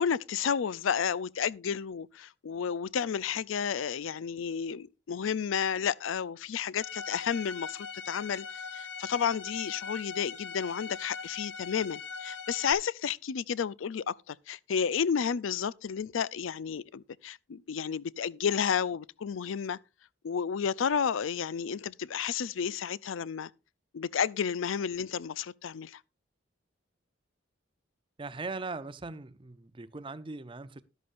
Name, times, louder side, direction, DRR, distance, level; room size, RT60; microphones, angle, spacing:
voice 1, 0.0-8.5 8.7-19.8 20.2-23.5 23.9-26.0, left 7 dB, 80° left, 0.4 m, -31 dB
Bowed string instrument, 6.8-12.7, left 5 dB, 60° left, 1.4 m, -41 dB
voice 2, 28.2-30.8, right 3 dB, 25° right, 0.6 m, -40 dB
13.0 x 11.0 x 2.5 m
head